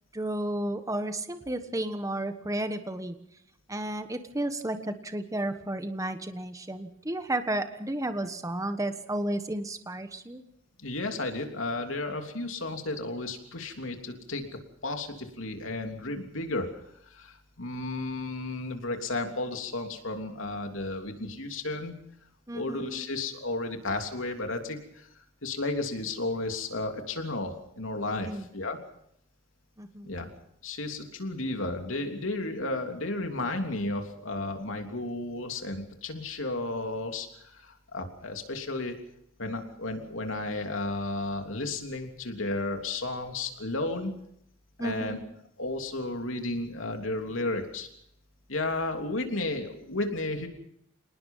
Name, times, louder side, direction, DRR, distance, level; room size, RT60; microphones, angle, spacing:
voice 1, 0.1-3.2 3.7-10.4 22.5-23.1 28.2-28.5 29.8-30.1 44.8-45.2, right 1 dB, 15° right, 8 dB, 1.3 m, -32 dB
voice 2, 10.8-14.5 14.8-16.8 17.1-21.9 22.5-25.1 25.4-28.8 30.0-30.3 30.6-38.9 39.4-44.2 44.8-45.2 45.6-47.9 48.5-50.5, left 2 dB, 85° left, 4 dB, 3.2 m, -33 dB
27.0 x 19.5 x 5.6 m, 0.75 s
head